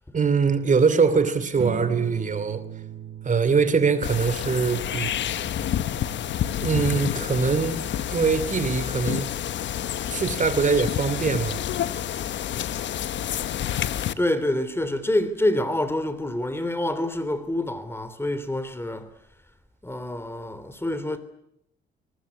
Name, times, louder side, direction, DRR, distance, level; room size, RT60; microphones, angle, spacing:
voice 1, 0.1-2.6 3.2-5.1 6.6-7.8 8.1-9.3 10.1-11.6, right 5 dB, 40° right, 2.7 m, -22 dB
sound 1, 1.6-12.3, right 11 dB, 80° right, 2.0 m, -42 dB
sound 2, 4.0-14.1, left 10 dB, 65° left, 1.2 m, -29 dB
voice 2, 14.2-19.1 19.8-21.2, left 1 dB, 10° left, 3.1 m, -26 dB
24.5 x 20.0 x 9.7 m
cardioid pair, 90°, 20 cm